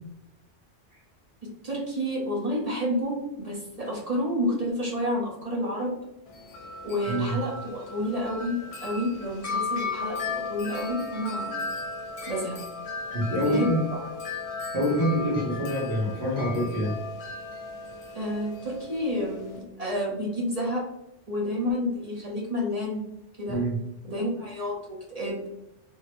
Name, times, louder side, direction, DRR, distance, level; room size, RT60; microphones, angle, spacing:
voice 1, 1.4-6.0 6.8-11.6 12.3-12.6 13.4-14.0 18.1-20.9 21.3-23.0 23.4-23.6 24.0-25.5, left 1 dB, 40° right, -3 dB, 0.7 m, -30 dB
Wind chime, 6.3-19.6, left 3 dB, 55° left, 0.4 m, -36 dB
voice 2, 13.1-13.7 14.7-16.9 23.5-23.8, equal, 75° right, -8 dB, 1.4 m, -26 dB
3.7 x 2.0 x 2.9 m, 0.89 s
omnidirectional pair, 1.2 m